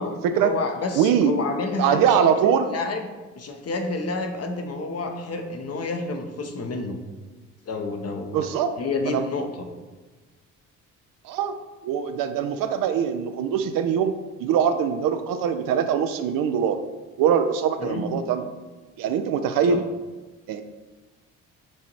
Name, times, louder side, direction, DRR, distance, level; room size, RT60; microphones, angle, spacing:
voice 1, 0.0-2.2 2.4-3.1 3.4-7.0 7.7-9.5 17.8-18.1 19.6-19.8, left 3 dB, 40° left, 5 dB, 0.8 m, -29 dB
voice 2, 1.0-1.3 1.8-2.7 8.3-8.7 9.0-9.2 11.2-11.6 11.8-14.1 14.4-16.8 17.2-18.4 19.0-19.8 20.5-20.6, right 8 dB, 60° right, 8 dB, 0.5 m, -22 dB
6.2 x 2.7 x 3.0 m, 1.2 s
hypercardioid pair, 55°, 38 cm